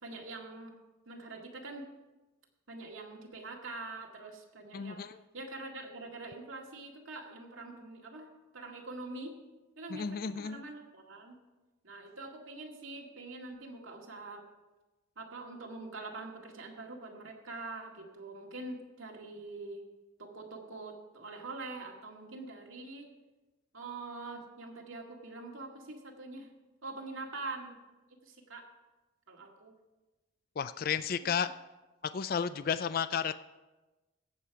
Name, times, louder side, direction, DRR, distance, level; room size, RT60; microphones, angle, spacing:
voice 1, 0.0-0.7 1.1-1.9 2.7-5.0 5.3-8.3 8.5-9.3 9.8-11.4 11.8-14.4 15.2-19.8 20.2-23.1 23.7-26.5 26.8-27.8 28.2-28.7 29.3-29.8 31.2-31.5, right 3 dB, 85° right, 0 dB, 2.0 m, -44 dB
voice 2, 4.7-5.2 9.9-10.6 30.6-31.5 32.1-33.4, left 7 dB, 45° left, 14 dB, 0.3 m, -32 dB
17.0 x 7.5 x 4.7 m, 1.1 s
head